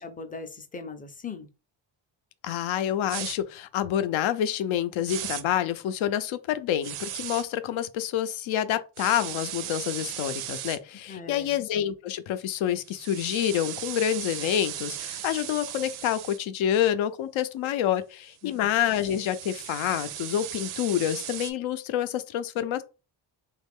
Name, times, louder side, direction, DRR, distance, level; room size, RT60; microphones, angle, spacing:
voice 1, 0.0-1.5 11.1-11.6 18.4-18.7, left 4 dB, 20° left, 0.5 m, -39 dB
voice 2, 2.4-22.8, left 10 dB, 75° left, 0.6 m, -28 dB
sound 1, 3.1-3.4 5.1-5.4 6.8-7.4 9.0-10.8 12.8-16.4 18.5-21.5, right 12 dB, 85° right, 0.6 m, -37 dB
3.1 x 2.4 x 3.5 m
cardioid pair, 110°, 48 cm